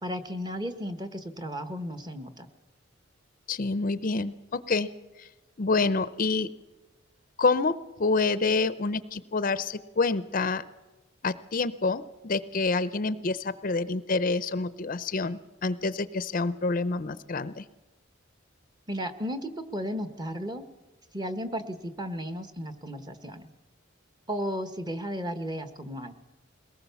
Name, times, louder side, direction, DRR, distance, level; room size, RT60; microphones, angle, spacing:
voice 1, 0.0-2.5 18.9-20.6 21.1-23.5 24.3-26.1, equal, 20° right, 9 dB, 1.3 m, -34 dB
voice 2, 3.5-4.9 5.2-5.3 5.6-6.5 7.4-10.6 11.2-17.6, left 3 dB, 45° left, 15 dB, 0.6 m, -27 dB
22.0 x 19.0 x 7.0 m, 1.1 s
head